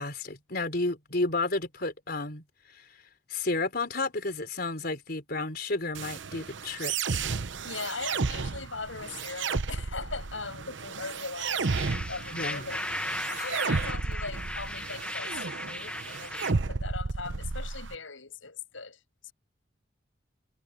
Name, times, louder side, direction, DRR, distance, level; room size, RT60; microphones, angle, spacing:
voice 1, 0.0-2.9 3.3-7.3 12.3-12.7 13.3-13.5, left 2 dB, 50° left, 4.2 m, -32 dB
sound 1, 5.9-17.9, right 4 dB, 70° right, 0.8 m, -33 dB
voice 2, 7.6-12.8 13.4-19.3, left 4 dB, 90° left, 7.8 m, -40 dB
sound 2, 11.6-16.5, left 1 dB, 5° left, 1.9 m, -36 dB
head